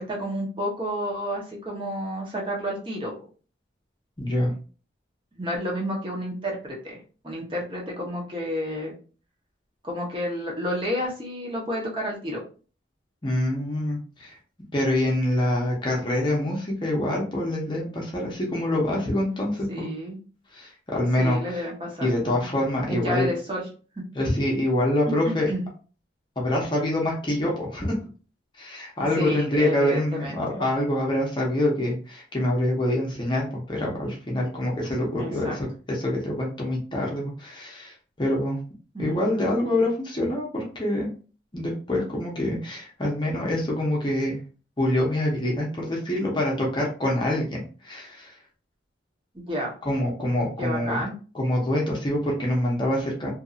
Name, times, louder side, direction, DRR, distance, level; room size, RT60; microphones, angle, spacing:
voice 1, 0.0-3.1 5.3-7.0 7.2-8.9 9.8-12.4 19.7-20.2 21.2-22.5 22.9-23.6 25.5-25.6 29.2-30.4 35.2-35.6 38.9-39.9 49.3-49.8 50.6-51.1, equal, 25° right, -2 dB, 0.9 m, -30 dB
voice 2, 4.2-4.5 13.2-14.3 14.7-19.9 20.5-21.7 22.0-23.3 24.1-25.5 26.4-27.9 28.6-38.6 39.0-41.1 41.5-44.4 44.8-48.3 49.8-51.0 51.3-53.3, left 1 dB, 25° left, -2 dB, 0.7 m, -25 dB
2.7 x 2.6 x 2.4 m, 0.37 s
head